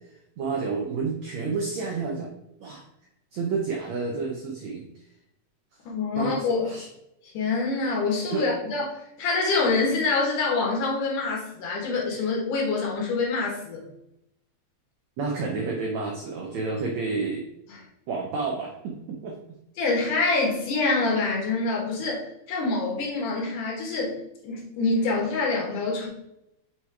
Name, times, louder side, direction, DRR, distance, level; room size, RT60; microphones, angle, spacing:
voice 1, 0.4-2.3 2.6-2.8 3.3-4.9 6.1-6.9 8.3-8.5 15.2-17.4 18.1-19.4, right 4 dB, 80° right, 0 dB, 1.6 m, -30 dB
voice 2, 5.9-6.7 7.2-13.8 17.7-17.8 19.8-24.2 24.4-26.1, left 3 dB, 60° left, -1 dB, 2.8 m, -26 dB
6.5 x 4.3 x 4.7 m, 0.83 s
omnidirectional pair, 4.4 m